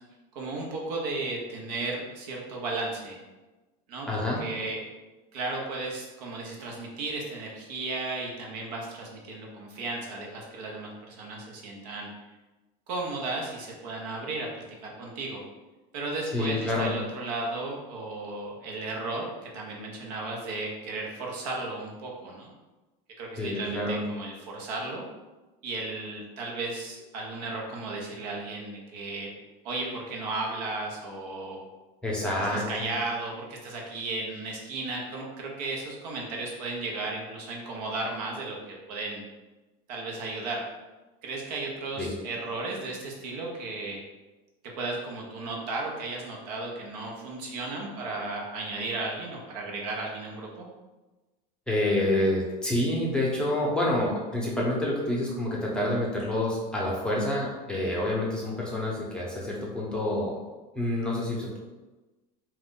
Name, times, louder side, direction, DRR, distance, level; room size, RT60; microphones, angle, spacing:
voice 1, 0.3-3.2 3.9-4.1 4.4-4.8 5.3-12.1 12.9-15.4 15.9-22.5 23.2-25.0 25.6-29.3 29.6-31.6 32.2-39.2 39.9-40.6 41.2-44.0 44.6-50.7, right 2 dB, 85° right, -1 dB, 0.8 m, -34 dB
voice 2, 4.1-4.4 16.3-17.0 23.4-24.0 32.0-32.9 42.0-42.2 51.7-60.4 60.7-61.6, left 1 dB, 5° left, -4 dB, 0.6 m, -28 dB
2.5 x 2.3 x 3.6 m, 1.2 s
supercardioid pair, 125°, 20 cm